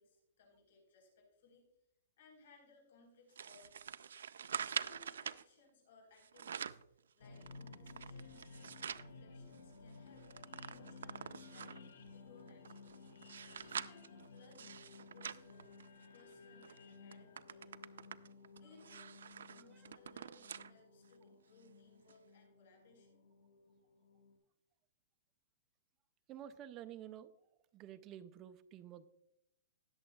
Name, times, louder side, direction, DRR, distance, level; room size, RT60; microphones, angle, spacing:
voice 1, 0.0-1.7 2.2-4.1 4.6-8.5 8.8-10.3 10.6-13.0 13.6-15.7 16.1-18.1 18.6-19.2 19.5-23.2, left 3 dB, 60° left, 0 dB, 4.1 m, -65 dB
sound 1, 3.4-5.4 6.2-6.9 7.4-9.1 9.5-9.6 9.9-11.9 12.5-16.2 16.6-16.8 17.1-20.7 21.1-21.2 22.1-22.2, right 7 dB, 90° right, 0.4 m, -46 dB
sound 2, 7.2-24.3, left 4 dB, 80° left, 2.0 m, -56 dB
voice 2, 26.3-27.3 27.7-29.1, right 11 dB, 20° right, 11 dB, 0.4 m, -50 dB
19.5 x 7.0 x 2.3 m, 0.82 s
hypercardioid pair, 170°, 0 cm